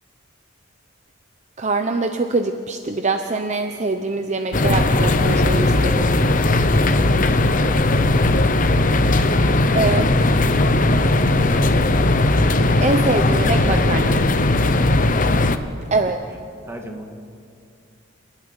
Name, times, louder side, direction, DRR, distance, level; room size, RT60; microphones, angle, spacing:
voice 1, 1.6-6.1 9.7-10.1 12.8-14.2 15.9-16.2, right 3 dB, 35° right, 6 dB, 0.8 m, -23 dB
sound 1, 4.5-15.6, left 2 dB, 40° left, 0.9 m, -17 dB
voice 2, 6.8-9.6 10.9-12.1 15.9-16.4 16.6-17.1, equal, 15° right, 2 dB, 2.1 m, -37 dB
28.5 x 11.5 x 9.8 m, 2.4 s
head